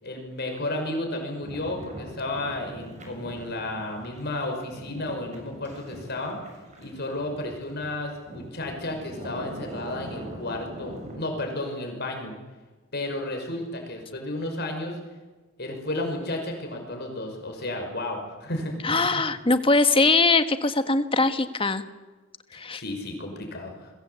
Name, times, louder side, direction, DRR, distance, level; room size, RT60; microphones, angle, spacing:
voice 1, 0.0-6.4 6.8-12.4 12.9-15.0 15.6-19.2 22.7-23.9, left 1 dB, 55° left, 3 dB, 5.7 m, -32 dB
sound 1, 1.4-11.2, equal, 35° right, 7.4 m, -42 dB
voice 2, 18.8-21.8 22.5-22.8, left 3 dB, 25° left, 10 dB, 1.5 m, -21 dB
29.5 x 22.5 x 8.3 m, 1.3 s
head